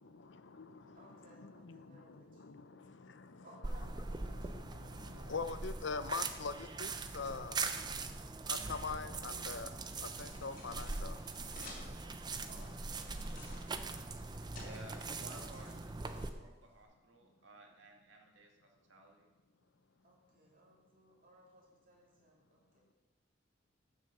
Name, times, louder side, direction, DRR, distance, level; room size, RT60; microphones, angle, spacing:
voice 1, 0.0-3.5 4.2-7.7 8.4-11.3, left 4 dB, 65° left, 0.6 m, -44 dB
voice 2, 0.9-2.4 3.4-4.6 12.5-14.6 20.0-22.9, right 1 dB, 45° right, 2.9 m, -62 dB
sound 1, 3.6-16.3, right 3 dB, 20° right, 0.5 m, -42 dB
sound 2, 10.1-16.8, left 2 dB, 45° left, 2.5 m, -57 dB
voice 3, 14.6-19.3, right 1 dB, 70° right, 2.0 m, -56 dB
11.0 x 6.3 x 6.6 m
head